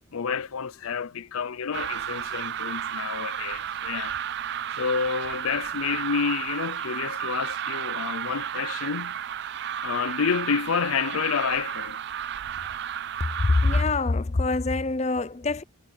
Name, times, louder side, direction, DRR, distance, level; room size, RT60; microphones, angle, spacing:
voice 1, 0.1-4.2 4.8-9.2 9.8-12.0, left 6 dB, 90° left, 0.6 m, -29 dB
sound 1, 1.7-13.8, right 9 dB, 50° right, 0.3 m, -32 dB
voice 2, 13.2-15.6, left 3 dB, 30° left, 0.5 m, -24 dB
head